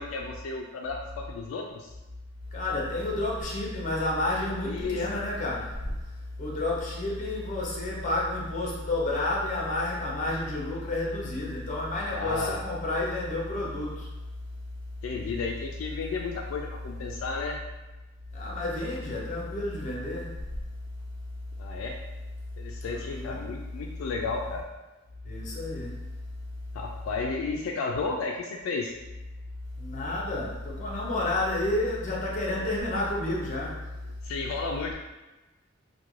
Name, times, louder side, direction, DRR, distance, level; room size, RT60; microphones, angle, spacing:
voice 1, 0.0-1.9 4.6-5.2 12.1-12.6 15.0-17.6 21.6-22.0 22.6-24.6 26.7-28.9 34.2-34.9, left 4 dB, 80° left, 1 dB, 0.3 m, -33 dB
voice 2, 2.5-5.9 6.4-14.1 18.3-20.3 22.8-23.4 25.2-26.0 29.8-33.9, left 2 dB, 40° left, -3 dB, 0.6 m, -30 dB
2.4 x 2.2 x 3.1 m, 1.1 s
head